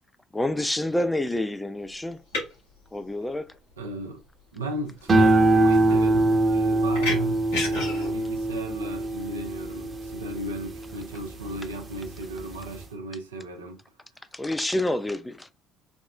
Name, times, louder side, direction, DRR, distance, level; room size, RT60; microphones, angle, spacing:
voice 1, 0.3-2.2 2.9-3.5 14.3-15.5, left 1 dB, 10° left, 0.4 m, -28 dB
sound 1, 1.8-10.3, left 2 dB, 80° left, 1.9 m, -36 dB
voice 2, 3.8-4.2 4.5-13.8, right 1 dB, 90° right, 0.5 m, -35 dB
sound 2, 5.1-11.6 12.1-12.6, right 2 dB, 35° right, 0.8 m, -23 dB
4.2 x 2.0 x 2.4 m
hypercardioid pair, 55°, 0 cm